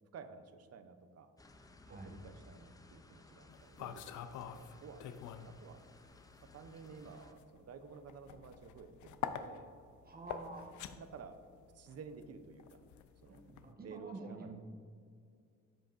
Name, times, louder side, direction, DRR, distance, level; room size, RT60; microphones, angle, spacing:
voice 1, 0.1-1.3 1.9-6.2 6.5-9.7 10.5-10.6 11.0-11.4 11.7-12.8 13.2-13.4 13.8-14.6, right 5 dB, 55° right, 9 dB, 0.7 m, -53 dB
sound 1, 1.4-7.3, left 2 dB, 10° left, 0.5 m, -60 dB
sound 2, 3.5-5.6 5.9-13.7, left 8 dB, 75° left, 0.5 m, -46 dB
voice 2, 10.0-10.7 13.3-14.6, right 3 dB, 30° right, 2 dB, 1.2 m, -48 dB
13.0 x 5.2 x 2.5 m, 2.2 s
cardioid pair, 90°, 30 cm